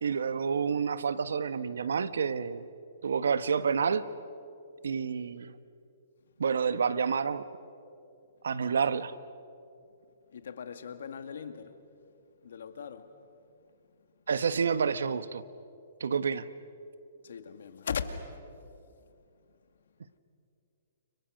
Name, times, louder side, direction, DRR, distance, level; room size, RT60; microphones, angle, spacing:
voice 1, 0.0-2.7 3.0-4.0 4.8-5.5 6.4-7.5 8.4-9.1 14.3-15.4 16.0-16.5, right 6 dB, 80° right, 1.3 m, -29 dB
voice 2, 10.3-11.8 12.4-13.1 13.9-14.0 17.2-18.4, left 6 dB, 75° left, 2.2 m, -39 dB
30.0 x 29.5 x 6.6 m
hypercardioid pair, 145°, 0 cm